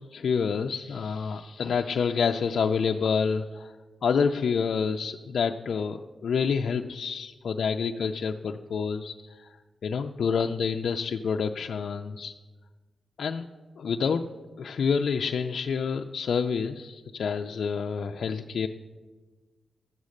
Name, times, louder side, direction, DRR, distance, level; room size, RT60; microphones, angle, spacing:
voice 1, 0.0-3.8 4.0-12.3 13.2-13.5 13.8-14.3 14.6-18.7, left 6 dB, 70° left, 4 dB, 0.4 m, -28 dB
12.5 x 8.3 x 6.4 m, 1.3 s
wide cardioid pair, 130°, 0 cm